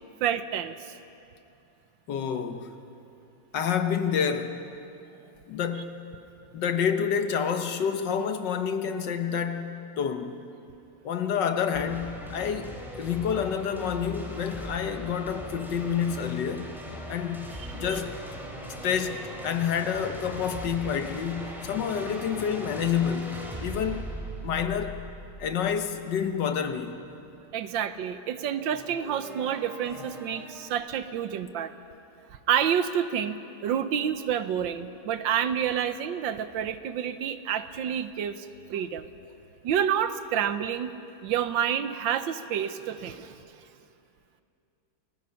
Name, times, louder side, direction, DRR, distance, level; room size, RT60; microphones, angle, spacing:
voice 1, 0.2-0.9 17.9-18.0 27.5-31.7 32.5-39.1 39.6-40.9 41.2-43.4, right 9 dB, 75° right, 1.5 m, -29 dB
voice 2, 2.1-2.8 3.5-4.6 5.5-6.0 6.5-10.4 11.0-16.7 17.1-18.2 18.8-24.1 24.4-25.0 25.4-27.0, left 7 dB, 65° left, 1.6 m, -28 dB
sound 1, 11.7-26.7 28.5-30.8, equal, ahead, 3.0 m, -40 dB
29.0 x 20.0 x 5.7 m
omnidirectional pair, 2.1 m